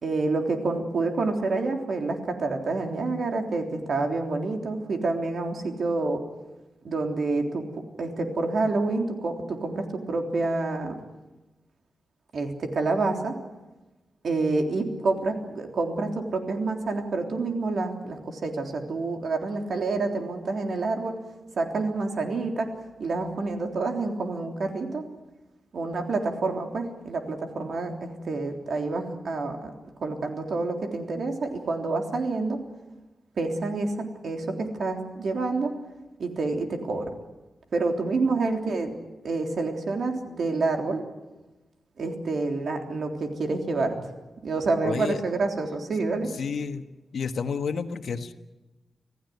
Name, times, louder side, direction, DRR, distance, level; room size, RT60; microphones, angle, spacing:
voice 1, 0.0-6.2 6.8-7.6 8.0-10.9 12.3-13.3 14.2-21.1 21.6-22.7 23.0-25.0 25.7-29.7 30.0-32.6 33.4-35.7 36.2-37.1 37.7-38.9 39.2-41.0 42.0-44.0 44.4-46.3, right 3 dB, 65° right, 3 dB, 3.5 m, -28 dB
voice 2, 44.8-45.2 46.3-46.8 47.1-48.3, left 5 dB, 75° left, 8 dB, 1.4 m, -30 dB
26.5 x 16.0 x 9.5 m, 1.1 s
wide cardioid pair, 130°, 0 cm